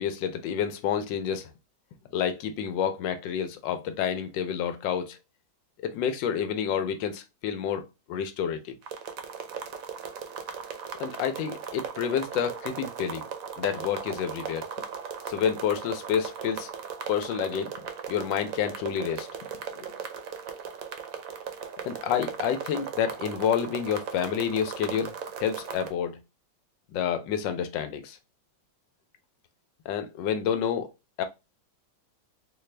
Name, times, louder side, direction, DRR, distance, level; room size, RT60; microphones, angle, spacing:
voice 1, 0.0-1.5 2.1-5.2 5.8-8.7 11.0-13.2 13.6-14.7 15.3-16.7 17.1-19.3 19.8-19.9 21.8-26.2 26.9-28.2 29.9-30.9 31.2-31.3, left 8 dB, 90° left, 1.3 m, -29 dB
sound 1, 8.8-25.9, right 7 dB, 65° right, 0.9 m, -38 dB
4.1 x 2.3 x 3.2 m
omnidirectional pair, 1.9 m